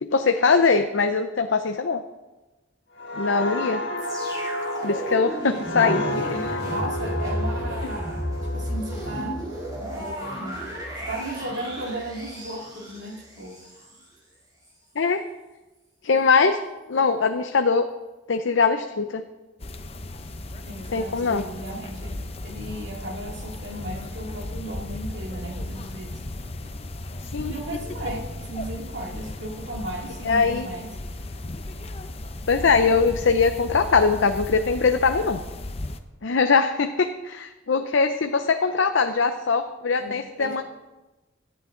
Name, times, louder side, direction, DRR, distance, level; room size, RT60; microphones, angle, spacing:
voice 1, 0.0-2.0 3.1-3.8 4.8-6.0 15.0-15.2 16.0-16.6 16.9-17.9 18.3-19.2 20.9-21.4 27.3-27.5 30.2-30.7 32.5-35.4 36.2-40.6, left 4 dB, 75° left, 7 dB, 0.6 m, -21 dB
sound 1, 3.0-10.4 10.8-11.1, left 1 dB, 60° left, 1.5 m, -32 dB
sound 2, 4.0-14.0 14.6-14.7, equal, 20° right, 4.9 m, -33 dB
voice 2, 5.7-8.3 8.5-9.4 9.9-10.7 11.1-13.6 20.6-26.2 27.4-30.9 40.0-40.6, right 1 dB, 65° right, 0 dB, 2.4 m, -35 dB
sound 3, 19.6-36.0, left 1 dB, 30° left, 0.7 m, -35 dB
17.0 x 11.5 x 3.8 m, 1.1 s
head